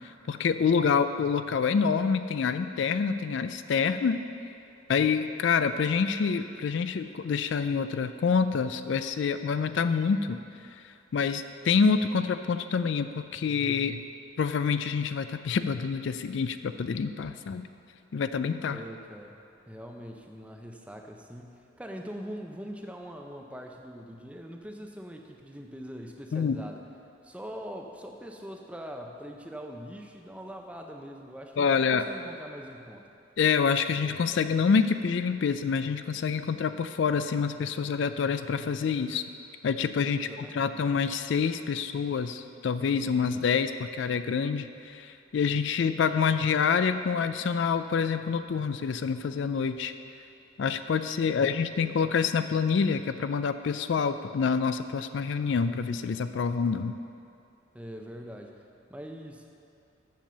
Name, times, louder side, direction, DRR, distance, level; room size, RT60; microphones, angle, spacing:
voice 1, 0.3-4.2 4.9-10.4 11.1-14.0 14.4-17.7 18.1-18.8 26.3-26.6 31.6-32.0 33.4-39.2 39.6-40.3 40.5-49.9 50.6-57.0, left 6 dB, 65° left, 10 dB, 0.3 m, -27 dB
voice 2, 18.7-19.4 19.6-26.8 27.2-33.1 40.0-40.8 51.3-51.6 57.7-58.6 58.9-59.5, equal, 5° right, 2 dB, 0.5 m, -42 dB
7.6 x 7.2 x 6.6 m, 2.6 s
head